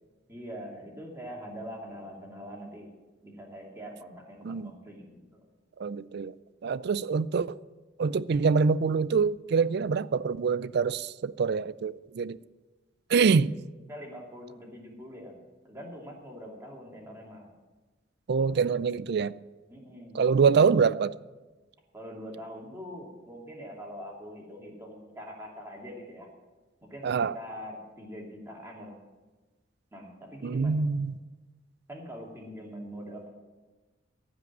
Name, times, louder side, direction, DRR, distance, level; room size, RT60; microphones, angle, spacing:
voice 1, 0.3-2.9 3.2-5.4 13.9-15.3 15.6-17.5 19.7-20.2 21.9-26.3 26.8-29.0 29.9-30.7 31.9-33.3, equal, 15° right, 2.6 m, -43 dB
voice 2, 5.8-6.4 6.6-7.6 8.0-12.4 13.1-13.5 18.3-19.3 20.1-21.1 27.0-27.4 30.4-31.2, right 5 dB, 55° right, 0.4 m, -25 dB
15.0 x 5.2 x 9.3 m
head